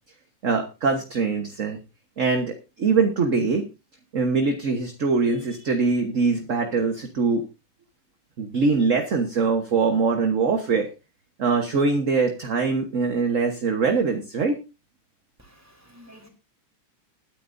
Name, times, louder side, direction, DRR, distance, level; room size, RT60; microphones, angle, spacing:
voice 1, 0.4-1.8 2.2-3.6 4.1-7.4 8.4-10.9 11.4-14.6, right 4 dB, 40° right, 5 dB, 1.4 m, -23 dB
voice 2, 15.4-16.3, equal, 5° right, 2 dB, 3.3 m, -51 dB
20.5 x 10.0 x 2.7 m, 0.29 s
omnidirectional pair, 2.4 m